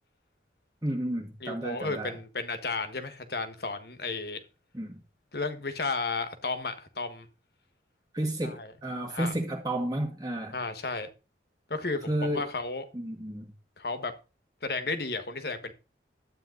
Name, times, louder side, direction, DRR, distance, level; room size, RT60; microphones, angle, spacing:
voice 1, 0.8-2.2 4.7-5.0 8.1-10.6 12.1-12.5 12.9-13.5, right 1 dB, 20° right, 1.8 m, -32 dB
voice 2, 1.4-4.4 5.3-7.3 8.4-8.7 9.1-9.3 10.5-11.1 11.7-12.9 13.8-14.1 14.6-15.7, left 3 dB, 55° left, 1.5 m, -33 dB
12.5 x 8.9 x 4.0 m
head